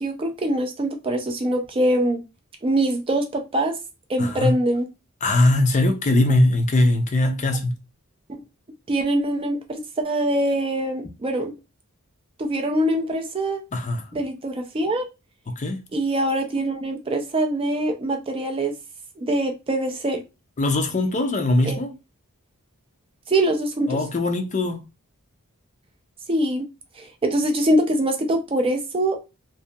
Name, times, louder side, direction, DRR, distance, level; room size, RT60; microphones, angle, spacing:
voice 1, 0.0-2.2 2.6-3.8 4.1-4.9 8.3-8.4 8.9-11.5 12.4-13.6 14.1-15.1 15.9-18.7 19.2-20.2 21.6-21.8 23.3-24.0 26.3-26.7 27.0-29.2, right 1 dB, 25° right, 0.4 m, -23 dB
voice 2, 4.2-4.6 5.2-7.8 13.7-14.0 15.6-15.8 20.6-21.9 23.9-24.8, left 2 dB, 35° left, 0.4 m, -21 dB
2.7 x 2.6 x 2.2 m
head